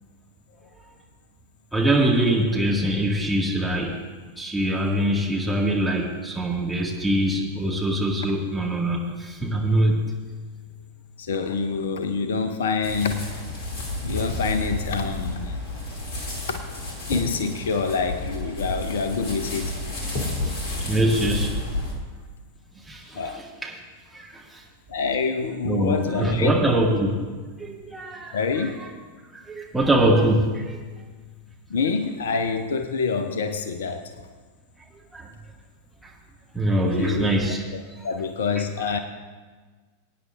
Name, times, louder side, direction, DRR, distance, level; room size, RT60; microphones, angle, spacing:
voice 1, 1.7-4.0 4.4-10.0 20.5-21.5 22.9-23.2 23.6-23.7 24.1-24.6 25.6-27.2 27.6-28.6 29.3-30.8 35.1-35.3 36.5-37.6, right 1 dB, 5° right, -3 dB, 2.0 m, -23 dB
voice 2, 11.2-13.3 14.0-15.6 16.5-16.6 17.1-19.8 23.1-23.4 24.9-27.0 28.3-28.8 31.7-34.1 36.8-37.3 37.7-39.0, left 5 dB, 60° left, 9 dB, 0.7 m, -26 dB
sound 1, 12.8-21.9, left 1 dB, 45° left, 2.5 m, -31 dB
23.5 x 9.5 x 2.5 m, 1.4 s
figure-of-eight pair, 90°, 0 cm